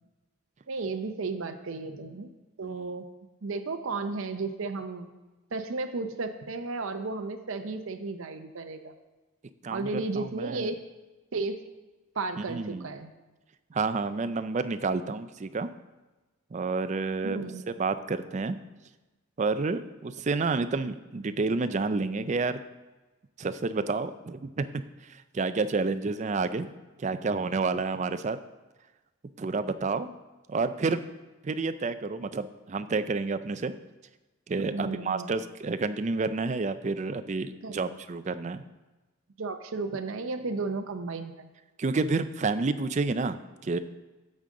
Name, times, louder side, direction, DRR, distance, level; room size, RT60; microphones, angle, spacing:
voice 1, 0.7-2.3 2.6-3.1 3.4-5.1 5.5-8.9 9.7-10.8 11.3-11.6 12.1-13.1 17.2-17.6 34.5-35.3 37.6-37.8 39.4-41.5, right 3 dB, 70° right, 6 dB, 0.6 m, -34 dB
voice 2, 2.6-2.9 9.6-9.9 10.2-10.7 12.5-12.9 13.7-15.7 16.5-18.6 19.4-22.6 23.4-24.8 25.3-26.7 27.0-28.4 29.4-30.1 30.5-31.0 31.4-33.7 34.5-38.6 41.8-43.8, right 3 dB, 35° right, 11 dB, 0.4 m, -29 dB
8.7 x 7.6 x 3.8 m, 1.1 s
head